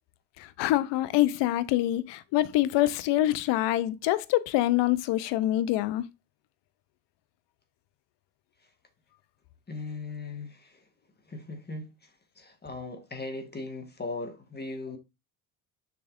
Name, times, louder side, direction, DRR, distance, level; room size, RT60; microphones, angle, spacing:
voice 1, 0.4-6.0, left 15 dB, 65° left, 0.8 m, -25 dB
voice 2, 9.7-10.9 11.2-15.0, left 3 dB, 20° left, 1.7 m, -39 dB
7.2 x 5.9 x 2.6 m
hypercardioid pair, 70°, 46 cm